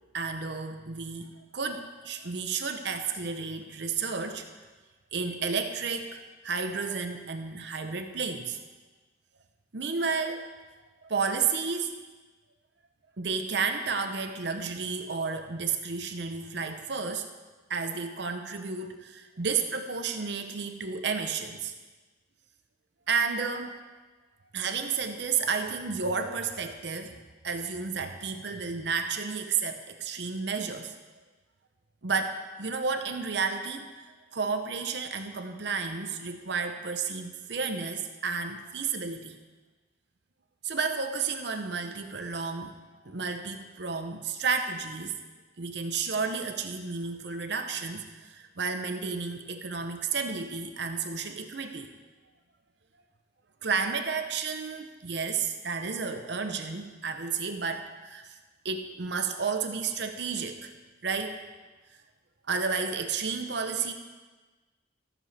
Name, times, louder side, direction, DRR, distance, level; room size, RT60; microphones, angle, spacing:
voice 1, 0.1-4.5 5.1-8.6 9.7-10.5 11.0-11.9 13.2-17.3 17.7-21.7 23.1-23.8 24.5-27.2 27.4-31.0 32.0-33.9 34.3-39.4 40.6-42.7 43.0-45.2 45.6-51.9 53.6-58.4 58.6-60.7 61.0-61.4 62.5-63.9, right 5 dB, 60° right, 6 dB, 0.8 m, -32 dB
14.0 x 7.1 x 4.2 m, 1.3 s
head